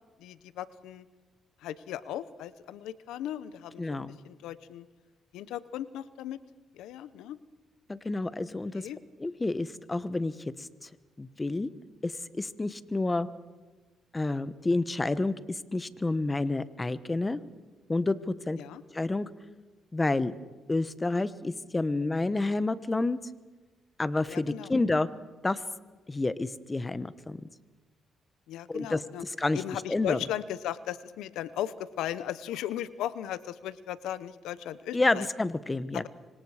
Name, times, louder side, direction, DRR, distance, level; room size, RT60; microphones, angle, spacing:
voice 1, 0.2-1.0 1.6-4.9 5.3-6.4 6.7-7.4 8.7-9.0 18.6-18.8 24.3-24.7 28.5-29.2 29.5-35.3 35.9-36.1, left 11 dB, 90° left, 15 dB, 0.8 m, -37 dB
voice 2, 3.8-4.2 7.9-8.9 9.2-10.3 10.6-10.9 11.2-11.7 12.0-13.3 14.1-15.3 15.7-17.4 17.9-18.1 18.5-18.6 18.9-19.3 19.9-20.4 20.7-23.2 24.0-25.1 25.4-25.6 26.1-27.5 28.7-29.6 29.9-30.2 34.9-36.0, left 2 dB, 20° left, 15 dB, 1.1 m, -29 dB
25.5 x 25.5 x 4.9 m, 1.3 s
cardioid pair, 90°, 0 cm